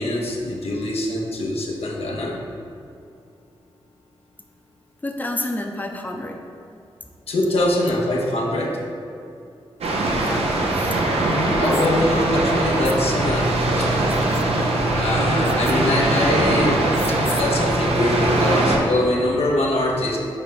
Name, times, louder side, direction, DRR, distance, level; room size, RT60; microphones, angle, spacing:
voice 1, 0.0-2.4 7.3-8.8 11.6-13.9 15.0-20.2, left 1 dB, 80° left, -1 dB, 0.9 m, -23 dB
voice 2, 5.0-6.4 10.2-11.0, left 1 dB, 20° left, 2 dB, 0.6 m, -30 dB
sound 1, 9.8-18.8, right 2 dB, 85° right, 0.8 m, -21 dB
sound 2, 11.6-11.9 12.8-13.0 14.1-14.4 15.4-15.7 16.9-17.4, left 5 dB, 65° left, 0.4 m, -35 dB
4.7 x 4.4 x 5.1 m, 2.5 s
cardioid pair, 45°, 10 cm